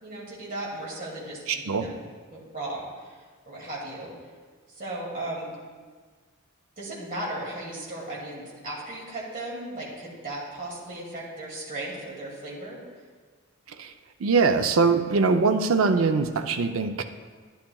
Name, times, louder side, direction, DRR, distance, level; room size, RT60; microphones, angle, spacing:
voice 1, 0.0-2.0 2.3-4.1 4.8-5.6 6.8-12.8, right 1 dB, 40° right, -4 dB, 2.3 m, -36 dB
voice 2, 1.5-1.9 13.8-13.9 14.2-17.0, right 4 dB, 75° right, 7 dB, 0.5 m, -22 dB
11.5 x 10.5 x 2.3 m, 1.5 s
head